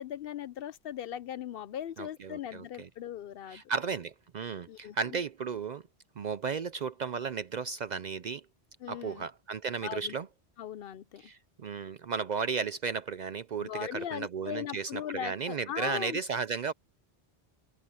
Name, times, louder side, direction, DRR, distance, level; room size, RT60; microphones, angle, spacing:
voice 1, 0.0-3.6 4.7-5.0 8.8-9.3 9.8-10.1 10.6-11.2 13.6-16.2, left 10 dB, 65° left, 0.7 m, -39 dB
voice 2, 2.0-2.9 3.5-5.8 6.2-8.4 8.9-10.3 11.2-16.7, right 5 dB, 55° right, 0.5 m, -34 dB
omnidirectional pair, 1.1 m